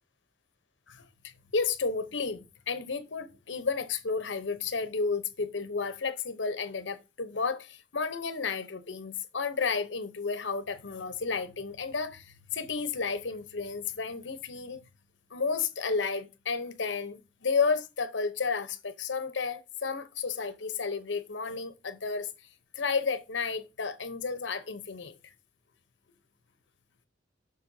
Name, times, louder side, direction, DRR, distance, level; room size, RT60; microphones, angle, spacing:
voice 1, 0.9-14.8 15.3-22.3 22.7-25.2, left 5 dB, 85° left, 0.9 m, -32 dB
7.6 x 6.4 x 2.7 m
head